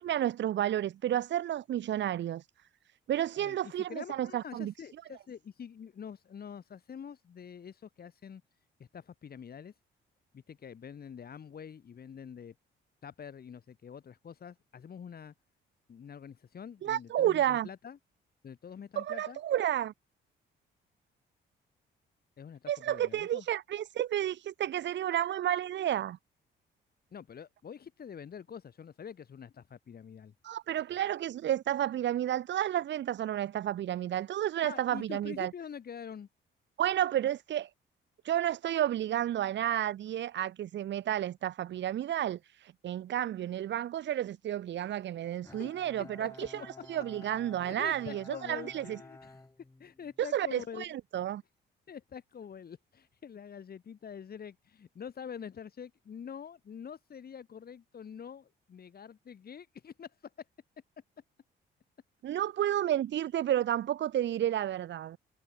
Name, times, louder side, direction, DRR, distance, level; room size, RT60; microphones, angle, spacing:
voice 1, 0.0-2.5 3.1-4.7 16.8-17.7 19.0-19.9 22.7-26.2 30.4-35.5 36.8-37.7 38.2-49.0 50.2-51.4 62.2-65.2, right 11 dB, 65° right, 1.1 m, -31 dB
voice 2, 3.4-8.4 8.8-9.7 10.3-12.5 13.0-15.3 15.9-18.0 18.4-19.4 22.4-23.4 27.1-30.3 34.6-36.3 45.5-46.7 47.6-49.4 49.8-50.9 51.9-60.5, left 7 dB, 50° left, 6.2 m, -46 dB
Bowed string instrument, 45.4-50.3, left 2 dB, 15° left, 3.0 m, -52 dB
cardioid pair, 90°, 20 cm